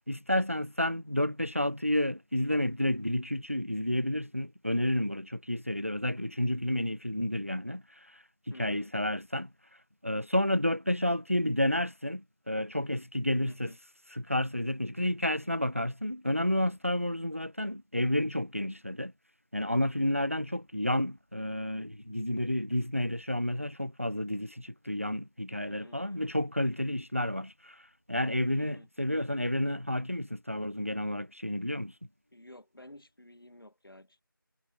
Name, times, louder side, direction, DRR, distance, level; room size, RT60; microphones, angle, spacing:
voice 1, 0.0-9.5 10.0-13.7 14.1-19.1 19.5-27.8 28.1-31.9, left 1 dB, 40° right, 0.4 m, -30 dB
voice 2, 8.5-8.9 13.5-13.8 25.6-26.3 28.6-28.9 32.3-34.2, left 1 dB, 80° left, 1.6 m, -52 dB
sound 1, 20.4-33.4, equal, 5° right, 2.0 m, -78 dB
figure-of-eight pair, 180°, 12 cm